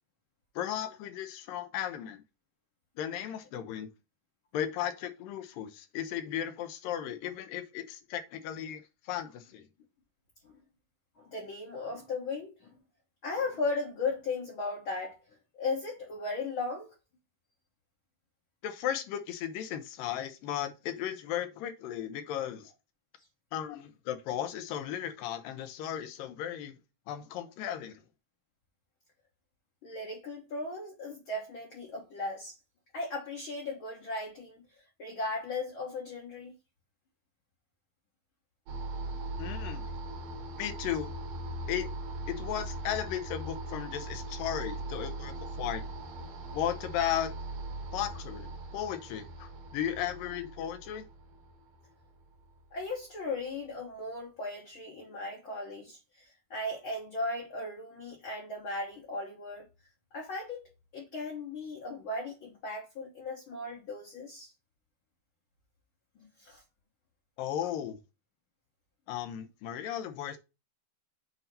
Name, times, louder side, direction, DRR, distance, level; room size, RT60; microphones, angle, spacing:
voice 1, 0.6-2.2 3.0-3.9 4.5-9.7 18.6-22.7 23.5-26.8 27.1-28.0 39.4-39.8 40.6-41.1 41.7-41.9 42.3-45.8 46.5-47.3 47.9-51.1 67.4-68.0 69.1-70.4, left 10 dB, 85° left, 2.5 m, -35 dB
voice 2, 11.1-12.8 13.2-15.2 15.5-16.9 29.8-32.6 32.9-34.6 35.0-36.5 52.7-59.7 60.1-64.5 66.4-66.6, left 3 dB, 55° left, 1.4 m, -37 dB
sound 1, 38.7-52.8, right 2 dB, 85° right, 3.2 m, -40 dB
8.0 x 2.9 x 5.2 m
omnidirectional pair, 4.0 m